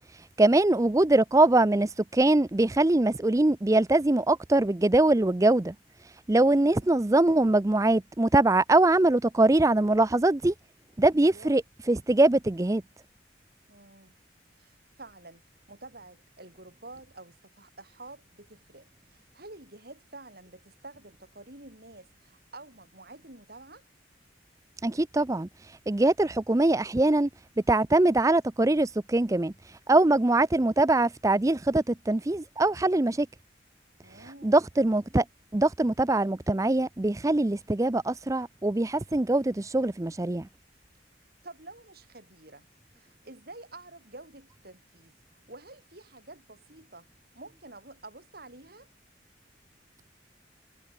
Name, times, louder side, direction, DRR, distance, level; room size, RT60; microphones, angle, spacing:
voice 1, 0.1-5.7 6.3-10.5 11.0-12.8 24.8-27.3 27.7-33.3 34.2-35.2 35.5-40.5, right 2 dB, 15° right, 0.5 m, -23 dB
voice 2, 6.3-6.9 11.2-11.6 13.7-14.1 14.6-15.4 15.7-23.8 34.0-34.6 41.4-47.1 47.3-48.9, right 2 dB, 55° right, 5.6 m, -49 dB
head